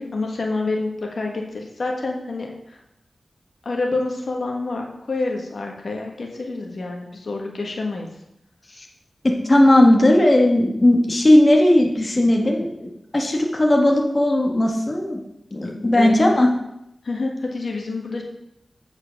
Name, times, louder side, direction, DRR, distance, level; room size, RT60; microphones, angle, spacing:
voice 1, 0.0-2.8 3.6-8.1 15.9-16.3 17.0-18.2, left 3 dB, 70° left, 1 dB, 1.4 m, -27 dB
voice 2, 9.2-15.2 15.5-16.5, left 1 dB, 35° left, 0 dB, 1.3 m, -17 dB
8.5 x 4.9 x 5.7 m, 0.82 s
wide cardioid pair, 95°, 0 cm